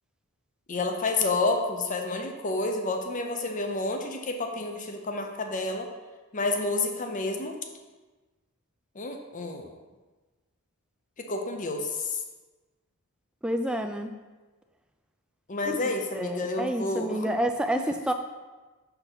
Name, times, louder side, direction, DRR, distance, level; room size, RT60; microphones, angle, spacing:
voice 1, 0.7-5.9 6.3-7.6 9.0-9.8 11.3-12.2 15.5-17.3 17.7-18.0, left 3 dB, 35° left, 4 dB, 0.6 m, -30 dB
voice 2, 13.4-14.1 15.7-18.1, right 1 dB, 5° right, 5 dB, 0.3 m, -29 dB
6.6 x 4.5 x 3.8 m, 1.2 s
head